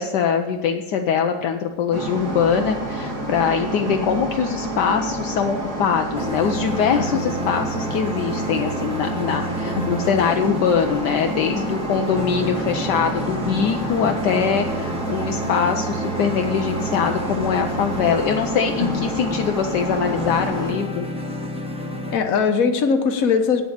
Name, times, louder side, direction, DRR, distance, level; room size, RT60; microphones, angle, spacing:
voice 1, 0.0-21.1, left 7 dB, 75° left, 5 dB, 1.2 m, -22 dB
sound 1, 1.9-20.7, right 1 dB, 60° right, 3.3 m, -29 dB
sound 2, 6.2-22.2, right 1 dB, 5° right, 0.8 m, -31 dB
voice 2, 22.1-23.6, left 5 dB, 55° left, 7 dB, 1.4 m, -21 dB
8.9 x 7.2 x 8.6 m, 1.1 s
omnidirectional pair, 1.9 m